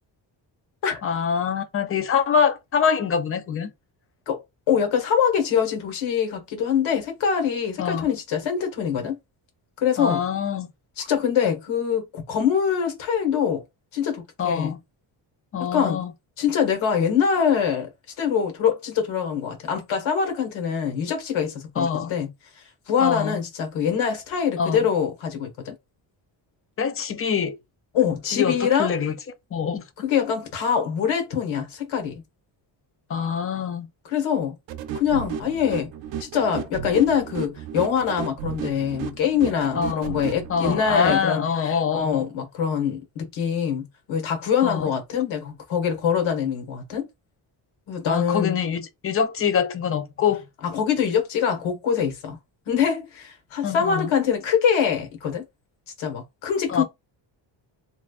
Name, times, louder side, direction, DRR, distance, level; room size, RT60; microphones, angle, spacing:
voice 1, 1.0-3.7 7.8-8.1 10.0-10.7 14.4-14.8 15.5-16.1 21.8-22.1 23.0-23.4 24.6-24.8 26.8-27.6 28.3-29.1 29.5-29.8 33.1-33.9 39.8-40.2 40.5-42.3 44.6-44.9 48.1-50.4 53.6-54.1 56.7-56.8, left 7 dB, 30° left, 0.4 m, -24 dB
voice 2, 4.3-9.2 9.8-10.2 11.0-13.6 13.9-14.7 15.7-16.0 16.4-17.9 18.2-22.3 22.9-25.7 27.9-28.9 30.0-32.2 34.0-34.5 34.9-35.9 36.2-47.1 47.9-48.6 50.7-52.4 52.7-55.4 56.0-56.8, left 7 dB, 80° left, 1.6 m, -24 dB
sound 1, 34.7-41.2, right 8 dB, 75° right, 0.6 m, -34 dB
3.7 x 3.3 x 2.4 m
cardioid pair, 175°, 46 cm